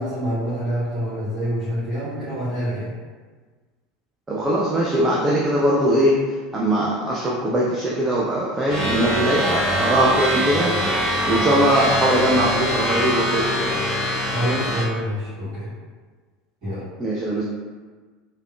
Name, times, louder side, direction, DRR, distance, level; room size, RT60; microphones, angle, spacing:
voice 1, 0.0-2.9 14.2-15.7 16.6-16.8, equal, 40° right, -14 dB, 1.1 m, -26 dB
voice 2, 4.3-6.2 6.5-10.7 11.3-13.8 17.0-17.4, right 1 dB, 20° right, -5 dB, 0.4 m, -21 dB
sound 1, 8.7-14.8, equal, 5° right, 1.0 m, -23 dB
3.4 x 2.0 x 2.2 m, 1.4 s
figure-of-eight pair, 75°, 0 cm